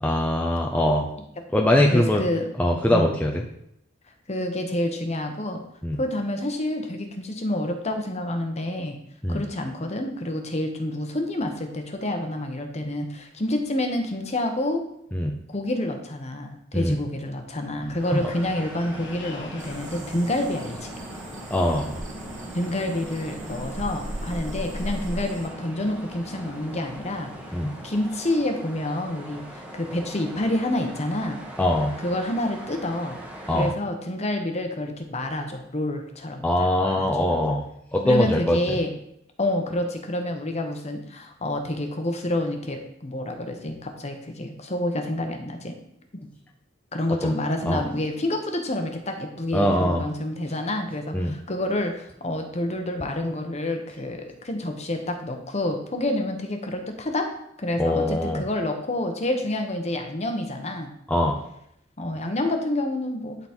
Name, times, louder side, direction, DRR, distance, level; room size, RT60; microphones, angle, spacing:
voice 1, 0.0-1.1 1.5-2.2 2.6-3.4 5.8-6.0 9.2-9.4 15.1-15.4 16.7-17.0 18.1-18.2 21.5-21.9 27.5-27.7 31.6-32.0 33.5-33.7 36.4-37.6 37.9-38.6 47.2-47.4 47.7-47.9 49.5-50.0 51.1-51.4 57.8-58.4 61.1-61.4, left 1 dB, 10° left, 0 dB, 0.7 m, -22 dB
voice 2, 1.9-2.5 2.9-3.1 4.3-5.6 6.0-9.0 9.3-14.8 15.5-20.9 22.5-27.3 27.8-31.4 32.0-33.2 33.5-37.5 38.0-38.9 39.4-45.7 46.9-57.3 57.6-60.9 62.0-63.4, left 1 dB, 35° left, 5 dB, 1.1 m, -28 dB
Wind, 17.8-28.1, equal, 65° left, 1.4 m, -42 dB
sound 1, 18.0-33.7, right 1 dB, 5° right, 1.3 m, -42 dB
sound 2, 19.6-25.5, right 1 dB, 40° right, 1.3 m, -37 dB
11.5 x 4.1 x 4.4 m, 0.75 s
head